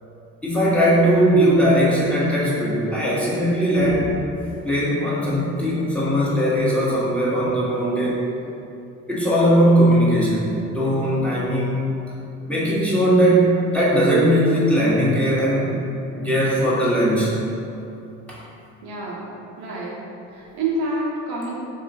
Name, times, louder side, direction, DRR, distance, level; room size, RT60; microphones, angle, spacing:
voice 1, 0.4-4.1 4.6-8.3 9.1-11.8 12.5-15.7 16.2-17.3 18.3-18.4, equal, 5° left, -8 dB, 1.2 m, -19 dB
voice 2, 18.8-19.3 19.6-19.9 20.3-21.5, right 2 dB, 60° right, -4 dB, 0.7 m, -27 dB
3.9 x 2.7 x 2.7 m, 2.7 s
hypercardioid pair, 50°, 42 cm